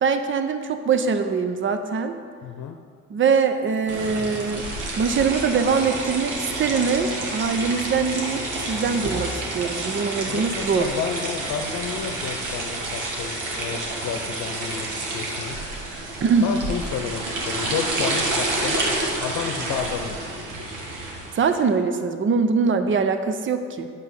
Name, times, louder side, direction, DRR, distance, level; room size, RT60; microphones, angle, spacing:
voice 1, 0.0-2.2 3.1-4.7 5.0-10.9 16.2-16.5 21.3-23.9, right 5 dB, 40° right, 8 dB, 0.7 m, -23 dB
voice 2, 2.4-2.8 10.3-15.6 16.4-18.8 19.2-20.2, left 7 dB, 85° left, 5 dB, 0.7 m, -31 dB
sound 1, 3.9-21.6, right 2 dB, 85° right, 1.5 m, -29 dB
8.7 x 6.7 x 5.4 m, 2.1 s
cardioid pair, 90°, 30 cm